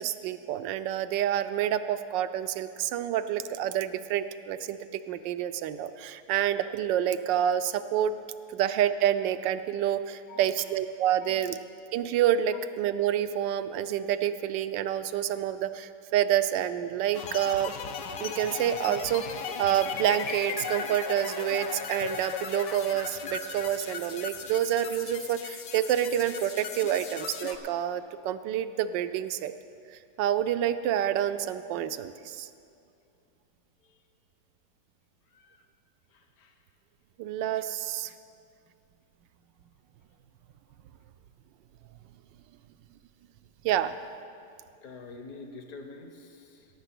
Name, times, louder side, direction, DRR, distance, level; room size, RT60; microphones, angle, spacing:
voice 1, 0.0-4.8 5.1-8.1 8.5-11.6 11.9-17.7 18.2-19.2 19.6-29.5 30.2-32.5 37.2-38.1 43.6-43.9, right 10 dB, 90° right, 11 dB, 1.3 m, -28 dB
voice 2, 10.3-10.7 11.2-11.4 33.8-34.0 35.3-35.6 36.1-36.5 44.8-46.7, left 3 dB, 60° left, 5 dB, 1.5 m, -47 dB
sound 1, 17.1-27.6, left 6 dB, 75° left, 1.4 m, -37 dB
16.5 x 7.4 x 6.1 m, 2.5 s
omnidirectional pair, 1.9 m